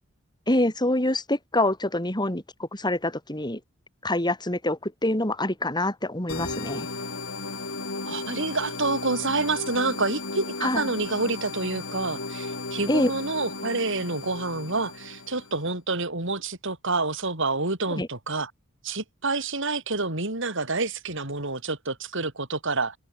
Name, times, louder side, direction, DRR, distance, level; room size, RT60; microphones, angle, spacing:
voice 1, 0.5-3.6 4.0-6.9 10.6-10.9 12.9-13.1 17.9-18.1, left 1 dB, 20° left, 6.4 m, -26 dB
sound 1, 6.3-15.6, left 3 dB, 75° left, 7.4 m, -35 dB
voice 2, 8.1-18.5 18.8-23.0, right 3 dB, 65° right, 5.5 m, -28 dB
head